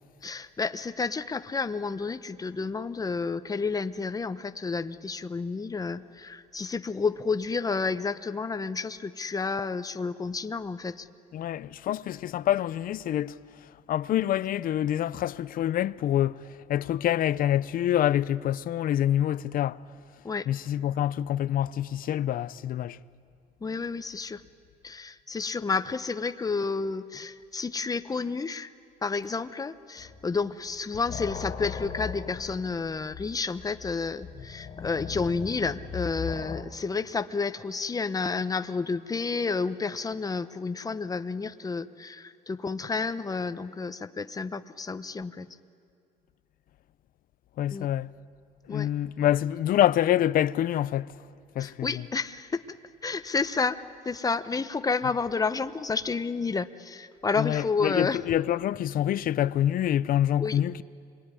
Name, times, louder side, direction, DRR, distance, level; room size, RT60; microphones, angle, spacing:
voice 1, 0.2-11.1 20.2-20.5 23.6-24.4 24.8-28.7 29.0-45.5 47.7-47.9 48.7-48.9 51.6-52.6 53.0-58.2 60.4-60.6, left 4 dB, 20° left, 0.9 m, -30 dB
voice 2, 11.3-13.4 13.9-19.8 20.5-23.0 47.6-48.1 48.7-51.2 51.5-52.0 57.4-60.8, left 11 dB, 55° left, 0.6 m, -26 dB
sound 1, 30.0-30.4 30.7-36.6, left 6 dB, 35° left, 1.7 m, -38 dB
26.5 x 22.5 x 9.9 m
cardioid pair, 110°, 17 cm